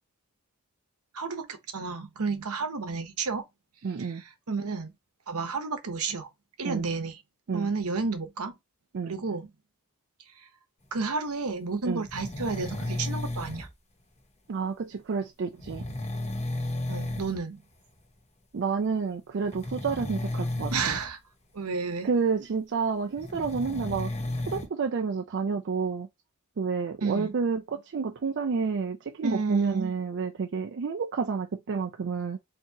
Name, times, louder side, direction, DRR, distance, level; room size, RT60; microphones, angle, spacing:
voice 1, 1.1-3.4 4.0-4.9 5.3-6.3 6.6-7.2 7.5-8.6 9.0-9.5 10.4-10.5 10.9-13.7 16.9-17.6 20.7-21.2 21.5-22.1 27.0-27.3 29.2-29.9, right 4 dB, 75° right, 0.9 m, -31 dB
voice 2, 3.8-4.2 6.6-6.9 7.5-7.7 8.9-9.1 11.8-12.0 14.5-15.8 18.5-21.0 22.0-24.1 24.5-26.1 26.6-32.4, right 5 dB, 55° right, 0.4 m, -30 dB
sound 1, 12.1-13.7 15.6-17.4 17.7-18.0 19.4-21.1 23.2-24.7, left 1 dB, 30° left, 1.0 m, -33 dB
4.5 x 2.8 x 2.8 m
head